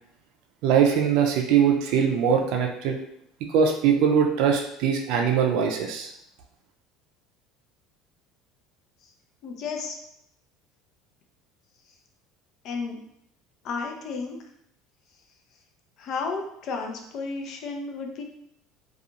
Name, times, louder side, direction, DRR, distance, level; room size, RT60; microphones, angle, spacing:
voice 1, 0.6-3.0 3.5-6.1, right 7 dB, 70° right, 2 dB, 0.4 m, -22 dB
voice 2, 9.4-10.0 12.6-13.0 13.6-14.4 16.0-18.2, left 4 dB, 55° left, 3 dB, 0.5 m, -32 dB
2.5 x 2.3 x 2.8 m, 0.76 s
supercardioid pair, 120°, 0 cm